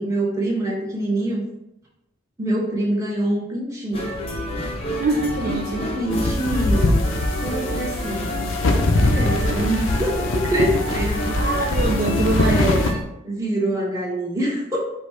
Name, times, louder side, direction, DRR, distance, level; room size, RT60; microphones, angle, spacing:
voice 1, 0.0-1.4 2.4-4.2 5.4-7.0 7.4-8.6 9.0-11.7 12.5-12.9 13.2-14.8, right 1 dB, 15° right, -4 dB, 1.1 m, -25 dB
sound 1, 3.9-13.0, equal, 30° left, 0.6 m, -29 dB
voice 2, 5.0-5.9 9.4-9.7 9.9-10.0 11.4-12.8, right 2 dB, 45° right, 1 dB, 0.3 m, -24 dB
sound 2, 6.1-12.9, left 2 dB, 70° left, 0.6 m, -22 dB
5.0 x 2.3 x 4.3 m, 0.87 s
head